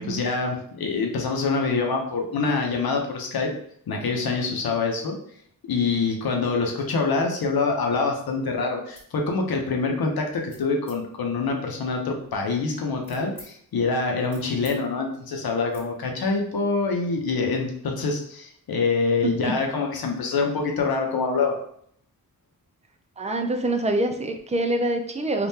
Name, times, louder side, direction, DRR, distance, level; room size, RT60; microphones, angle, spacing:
voice 1, 0.0-3.5 3.9-5.2 5.6-21.6, left 4 dB, 80° left, 2 dB, 0.7 m, -25 dB
sound 1, 8.9-9.1 9.6-9.9 10.5-11.0 11.6-13.5 13.9-14.8 15.0-15.2 15.7-15.9, left 1 dB, 5° left, 1.4 m, -49 dB
voice 2, 19.2-19.5 23.2-25.5, right 1 dB, 20° right, 5 dB, 0.3 m, -25 dB
3.5 x 2.4 x 2.7 m, 0.66 s
wide cardioid pair, 105°, 36 cm